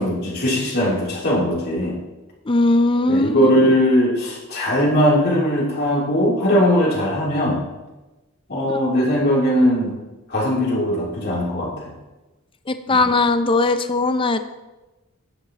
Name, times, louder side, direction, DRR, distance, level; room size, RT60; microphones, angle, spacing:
voice 1, 0.0-2.0 3.1-7.6 8.5-9.9 10.3-11.9 12.9-13.0, equal, 45° left, -4 dB, 3.0 m, -19 dB
voice 2, 2.5-3.5 12.7-14.5, left 2 dB, 25° left, 10 dB, 0.5 m, -19 dB
11.5 x 9.6 x 2.9 m, 1.1 s
head